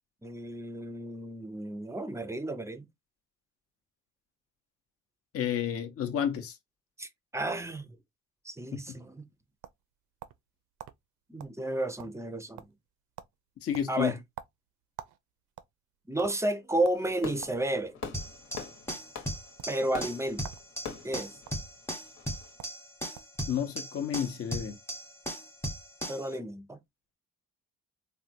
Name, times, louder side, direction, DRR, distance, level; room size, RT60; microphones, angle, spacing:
voice 1, 0.2-2.9 7.0-7.9 8.4-9.2 11.3-12.7 13.9-14.2 16.1-18.0 19.7-20.4 21.0-21.4 26.1-26.8, right 1 dB, 10° right, 0.5 m, -32 dB
voice 2, 5.3-6.6 8.7-9.0 13.6-14.1 23.5-24.8, left 9 dB, 50° left, 0.7 m, -31 dB
sound 1, 9.2-10.5 10.8-11.0 11.4-11.6 11.8-12.3 12.6-12.9 13.2-13.4 13.7-15.2 15.5-16.3 16.8-17.0 17.4-17.6 18.0-18.7 19.5-19.7 20.4-20.7 20.9-21.5 22.3-22.4 22.6-22.8 23.1-23.4, right 12 dB, 80° right, 0.5 m, -46 dB
Fireworks, 16.9-22.5, left 6 dB, 70° left, 1.1 m, -44 dB
sound 2, 18.1-26.3, equal, 10° left, 0.9 m, -38 dB
3.4 x 2.2 x 2.6 m
cardioid pair, 90°, 30 cm